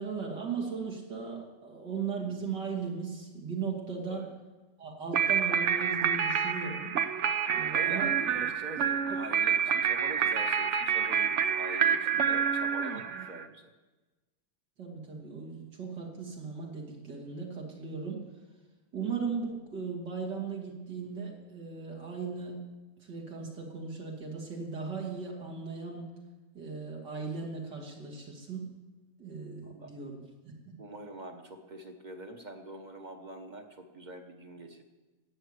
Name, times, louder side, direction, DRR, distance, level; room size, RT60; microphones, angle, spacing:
voice 1, 0.0-4.2 4.8-6.9 7.5-8.2 14.8-18.2 18.9-22.6 23.0-26.1 26.5-28.7 29.2-30.2 30.4-30.7, right 5 dB, 75° right, -1 dB, 3.2 m, -37 dB
sound 1, 5.1-13.4, right 7 dB, 60° right, 0.8 m, -28 dB
voice 2, 7.7-13.7 29.6-29.9 30.8-34.8, right 2 dB, 30° right, 5 dB, 1.2 m, -44 dB
14.0 x 9.0 x 8.2 m, 1.2 s
omnidirectional pair, 1.9 m